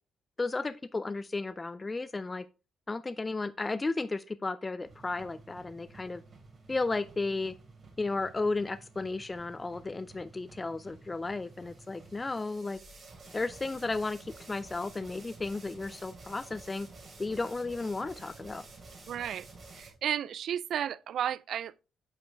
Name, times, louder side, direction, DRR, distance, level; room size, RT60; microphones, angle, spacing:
voice 1, 0.4-2.5 2.9-6.2 6.7-7.5 8.0-12.8 13.3-16.9 17.2-18.7, left 3 dB, 25° left, 0.4 m, -34 dB
sound 1, 4.8-19.9, right 3 dB, 40° right, 2.8 m, -52 dB
voice 2, 19.1-19.5 19.7-21.8, right 10 dB, 65° right, 0.3 m, -33 dB
8.0 x 5.1 x 3.4 m
cardioid pair, 90°, 0 cm